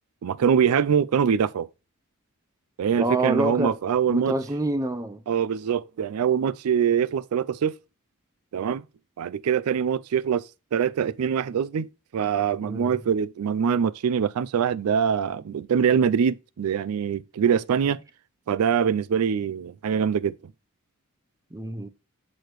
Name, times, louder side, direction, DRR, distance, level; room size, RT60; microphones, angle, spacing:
voice 1, 0.2-1.7 2.8-4.3 5.3-7.8 8.5-8.8 9.2-18.0 18.5-20.3, right 7 dB, 85° right, 0.4 m, -24 dB
voice 2, 3.0-3.8 4.1-5.2 12.6-13.0 21.5-21.9, right 2 dB, 15° right, 0.6 m, -27 dB
6.6 x 6.3 x 3.0 m
head